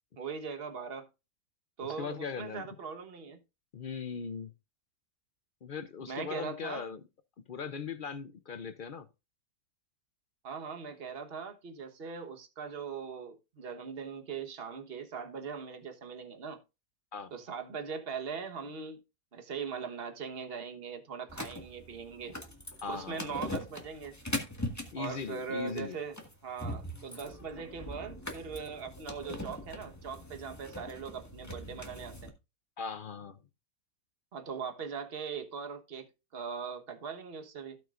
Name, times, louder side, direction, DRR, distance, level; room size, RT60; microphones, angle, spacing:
voice 1, 0.2-1.1 1.8-3.4 6.0-6.9 10.4-16.6 17.3-19.0 19.3-22.4 22.9-24.2 25.0-26.2 26.4-32.3 34.3-37.8, right 6 dB, 40° right, 1.4 m, -40 dB
voice 2, 1.8-2.7 3.7-4.5 5.6-7.0 7.5-9.1 17.1-17.3 22.8-23.4 24.9-26.0 32.8-33.4, left 5 dB, 65° left, 0.5 m, -39 dB
sound 1, 21.3-32.3, left 1 dB, 10° left, 1.6 m, -41 dB
16.5 x 6.3 x 2.5 m
omnidirectional pair, 1.7 m